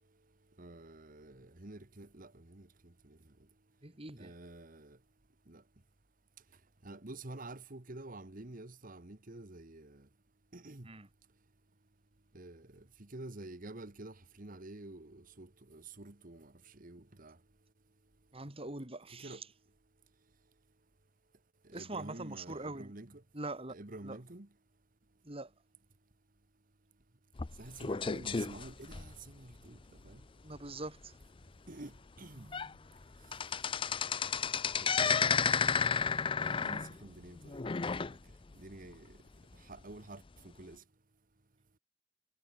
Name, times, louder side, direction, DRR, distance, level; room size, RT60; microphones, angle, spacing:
voice 1, 0.6-3.2 4.2-5.0 5.5-5.6 6.8-10.0 10.5-10.9 12.3-17.4 19.1-19.4 21.6-23.2 23.7-24.5 27.6-29.8 30.0-30.2 31.7-32.8 34.8-35.8 36.4-38.2 38.5-39.1 39.6-40.8, right 2 dB, 45° right, 1.5 m, -49 dB
voice 2, 3.8-4.3 10.8-11.1 18.3-19.4 21.7-22.9 23.3-23.7 24.0-24.2 25.2-25.5 30.4-31.2 33.9-34.0, right 2 dB, 30° right, 2.7 m, -43 dB
sound 1, 27.4-29.6 30.1-30.2 30.6-30.7 31.2-31.3 31.9-32.0 32.3-32.7 33.0-38.5 38.9-39.0 39.8-39.9, left 6 dB, 25° left, 0.5 m, -32 dB
head